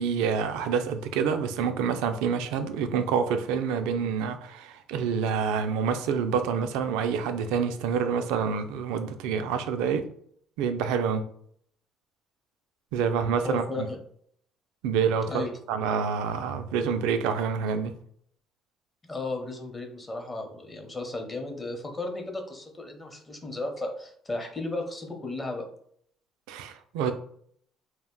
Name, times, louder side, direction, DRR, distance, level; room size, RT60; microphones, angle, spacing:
voice 1, 0.0-10.1 10.6-11.2 12.9-13.9 14.8-17.9 26.5-27.1, right 6 dB, 85° right, 0.3 m, -27 dB
voice 2, 13.4-14.0 15.2-15.5 19.0-25.7, left 2 dB, 25° left, 0.7 m, -34 dB
2.4 x 2.1 x 3.6 m
supercardioid pair, 75°, 0 cm